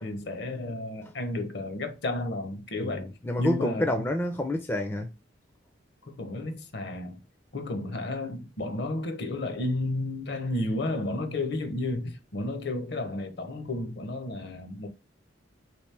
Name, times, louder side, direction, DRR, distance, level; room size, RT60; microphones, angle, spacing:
voice 1, 0.0-3.1 3.4-4.1 6.1-7.2 7.5-14.9, left 2 dB, 60° left, 0.7 m, -32 dB
voice 2, 2.8-5.1, left 1 dB, 10° left, 0.4 m, -28 dB
3.1 x 3.1 x 3.2 m
head